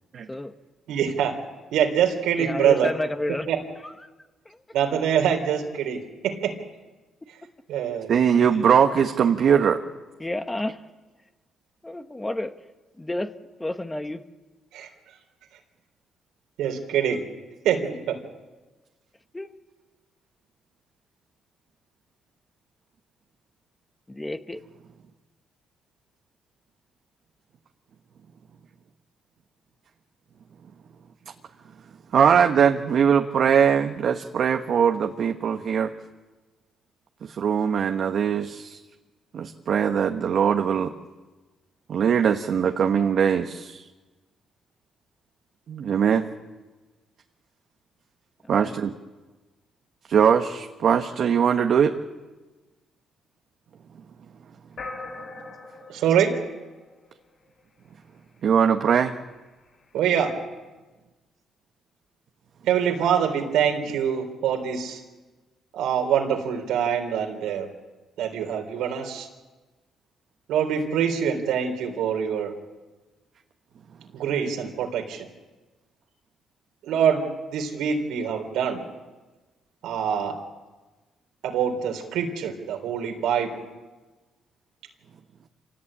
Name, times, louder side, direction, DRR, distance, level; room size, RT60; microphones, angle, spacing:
voice 1, 0.9-1.4 1.7-2.9 3.5-3.6 4.7-6.6 7.7-8.2 14.7-14.9 16.6-17.2 17.6-18.2 55.9-56.4 59.9-60.4 62.7-65.0 65.7-67.7 68.2-69.3 70.5-72.5 74.1-75.3 76.8-78.8 79.8-80.4 81.4-83.5, right 8 dB, 90° right, 4 dB, 3.6 m, -24 dB
voice 2, 2.4-3.5 3.8-3.9 4.4-4.6 10.2-10.8 11.8-12.5 13.0-13.3 13.6-14.2 19.3-19.5 24.1-24.6 48.4-48.8, left 1 dB, 15° left, 8 dB, 1.4 m, -30 dB
voice 3, 8.1-9.8 32.1-35.9 37.2-38.8 39.3-40.9 41.9-43.8 45.7-46.3 48.5-48.9 50.1-52.0 58.4-59.1, right 7 dB, 60° right, 5 dB, 1.2 m, -21 dB
sound 1, 54.8-57.4, left 3 dB, 50° left, 7.5 m, -40 dB
27.0 x 17.5 x 8.8 m, 1.2 s
cardioid pair, 90°, 0 cm